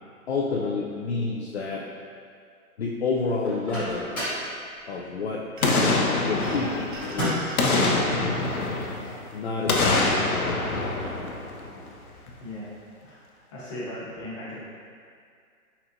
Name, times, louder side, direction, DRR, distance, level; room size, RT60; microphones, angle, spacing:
voice 1, 0.3-1.9 2.8-4.1 4.9-5.5 6.2-7.6 9.3-10.8, left 4 dB, 50° left, -2 dB, 0.4 m, -29 dB
Microwave oven, 3.4-4.5 7.0-7.6, equal, 5° left, 0.6 m, -30 dB
Boom, 5.6-7.1 7.6-9.2 9.7-11.9 12.3-12.4, left 2 dB, 80° left, 0.8 m, -25 dB
sound 1, 5.6-6.0 6.4-7.7, right 1 dB, 35° right, 0.6 m, -43 dB
voice 2, 12.4-12.7 13.0-14.6, left 1 dB, 20° left, -8 dB, 1.1 m, -38 dB
4.4 x 4.2 x 2.5 m, 2.2 s
hypercardioid pair, 150°, 44 cm